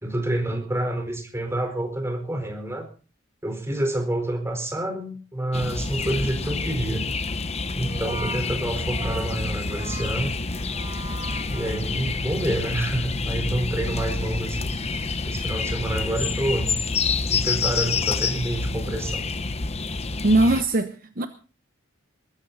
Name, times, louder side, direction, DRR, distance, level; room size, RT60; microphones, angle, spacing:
voice 1, 0.0-2.9 3.4-7.1 7.7-10.3 11.5-14.8 15.3-16.7 17.3-19.2, right 1 dB, 15° right, 4.4 m, -28 dB
sound 1, 5.5-20.6, left 4 dB, 30° left, 0.9 m, -28 dB
Brass instrument, 7.8-12.3, right 3 dB, 30° right, 1.9 m, -40 dB
voice 2, 20.2-21.3, right 2 dB, 45° right, 1.0 m, -20 dB
21.0 x 14.5 x 4.1 m
head